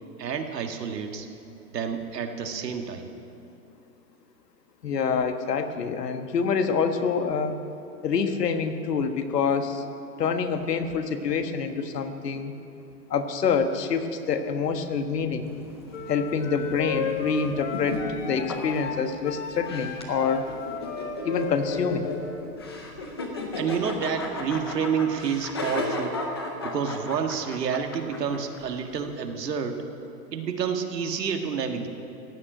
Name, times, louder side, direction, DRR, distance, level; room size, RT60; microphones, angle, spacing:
voice 1, 0.2-1.3 1.7-3.1 23.6-26.2 26.6-29.8 30.3-31.9, right 6 dB, 80° right, 5 dB, 1.8 m, -29 dB
voice 2, 4.8-7.6 8.0-9.8 10.2-12.5 13.1-15.5 16.1-20.5 21.2-22.1, left 5 dB, 80° left, 7 dB, 1.5 m, -26 dB
sound 1, 15.4-29.0, left 2 dB, 15° left, 0.6 m, -36 dB
sound 2, 15.9-22.4, left 6 dB, 50° left, 1.8 m, -35 dB
15.5 x 9.1 x 9.1 m, 2.7 s
hypercardioid pair, 170°, 48 cm